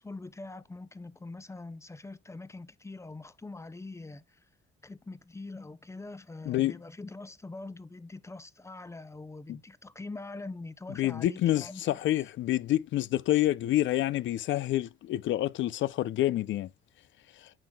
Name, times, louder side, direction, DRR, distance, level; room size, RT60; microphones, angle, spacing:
voice 1, 0.0-4.4 4.8-12.0, left 3 dB, 15° left, 0.7 m, -43 dB
voice 2, 11.0-16.7, left 14 dB, 70° left, 0.5 m, -28 dB
8.9 x 5.9 x 2.3 m
cardioid pair, 90°, 20 cm